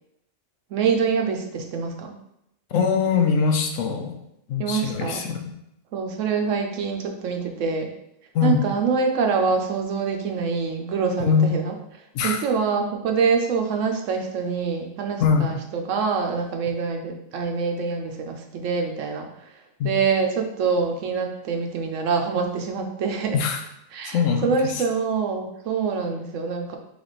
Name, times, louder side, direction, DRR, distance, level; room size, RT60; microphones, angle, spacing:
voice 1, 0.7-2.2 4.6-5.2 5.9-7.9 8.4-11.7 12.2-15.6 15.9-19.3 19.8-23.4 23.9-24.2 24.4-26.8, right 5 dB, 80° right, 3 dB, 1.0 m, -25 dB
voice 2, 2.7-4.1 4.5-5.4 8.3-8.6 11.2-11.5 12.1-12.4 15.2-15.5 19.8-19.9 23.3-23.6 24.0-24.8, left 6 dB, 85° left, 4 dB, 1.0 m, -22 dB
3.4 x 3.4 x 4.0 m, 0.79 s
omnidirectional pair, 1.3 m